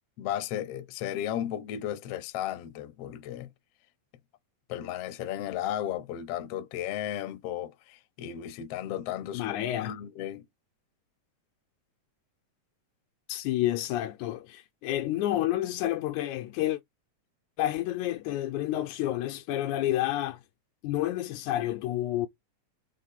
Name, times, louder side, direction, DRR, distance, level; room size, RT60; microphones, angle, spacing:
voice 1, 0.2-3.5 4.7-10.5, left 11 dB, 65° left, 1.8 m, -34 dB
voice 2, 9.3-9.9 13.3-16.8 17.6-20.4 20.8-22.3, left 14 dB, 85° left, 2.1 m, -29 dB
5.6 x 3.6 x 5.7 m
omnidirectional pair, 3.4 m